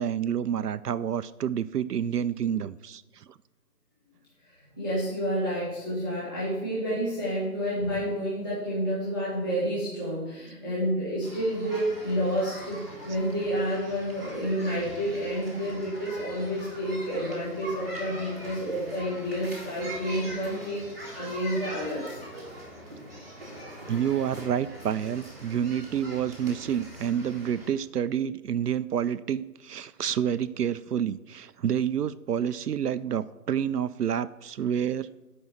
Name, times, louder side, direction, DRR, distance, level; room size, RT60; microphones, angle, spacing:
voice 1, 0.0-3.2 23.9-35.2, right 9 dB, 75° right, 14 dB, 0.5 m, -29 dB
voice 2, 4.8-22.2, equal, 15° left, -11 dB, 1.6 m, -29 dB
sound 1, 11.2-27.7, right 1 dB, 10° right, 1.2 m, -42 dB
9.5 x 5.5 x 7.4 m, 1.0 s
hypercardioid pair, 180°, 48 cm